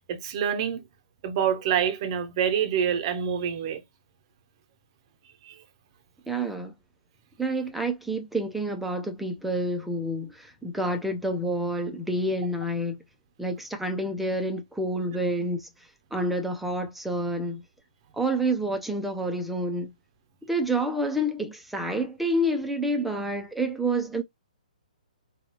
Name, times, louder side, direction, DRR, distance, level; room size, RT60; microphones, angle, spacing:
voice 1, 0.1-0.8 1.2-3.8 5.4-5.6, right 8 dB, 40° right, 0.8 m, -26 dB
voice 2, 6.3-6.7 7.4-13.0 13.4-15.7 16.1-17.6 18.1-19.9 20.5-24.2, right 1 dB, 5° right, 0.6 m, -28 dB
3.9 x 2.3 x 3.0 m
figure-of-eight pair, 130°, 4 cm